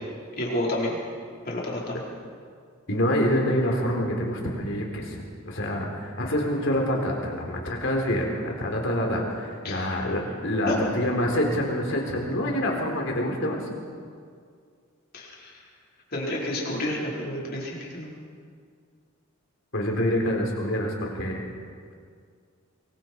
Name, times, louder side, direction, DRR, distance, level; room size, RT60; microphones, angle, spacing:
voice 1, 0.4-1.0 1.4-2.0 9.6-10.1 10.6-10.8 15.1-15.6 16.1-18.1, left 1 dB, 45° left, -4 dB, 4.7 m, -30 dB
voice 2, 2.9-5.2 5.5-13.6 19.7-21.4, equal, 60° left, 0 dB, 3.8 m, -26 dB
24.0 x 23.0 x 4.7 m, 2.1 s
head